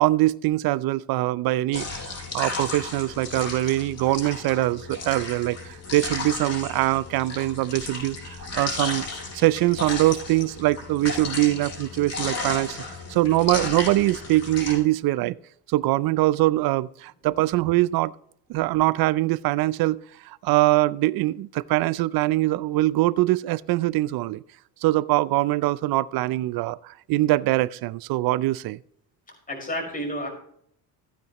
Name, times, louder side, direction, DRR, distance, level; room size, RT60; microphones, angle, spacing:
voice 1, 0.0-9.0 9.3-12.8 13.1-15.4 15.7-18.1 18.5-24.4 24.8-28.8, right 17 dB, 65° right, 19 dB, 0.5 m, -23 dB
sound 1, 1.7-14.8, left 3 dB, 45° left, 5.4 m, -34 dB
voice 2, 29.3-30.3, equal, 20° left, 0 dB, 5.2 m, -31 dB
15.0 x 9.4 x 3.0 m, 0.68 s
cardioid pair, 110°, 38 cm